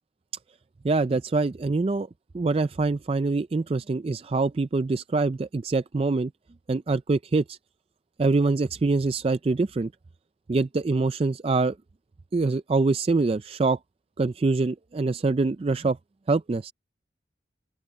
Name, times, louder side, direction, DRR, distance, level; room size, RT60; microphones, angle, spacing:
voice 1, 0.8-2.1 2.3-6.3 6.7-7.6 8.2-9.9 10.5-11.8 12.3-13.8 14.2-16.0 16.3-16.7, right 3 dB, 30° right, 0.3 m, -24 dB
open air
head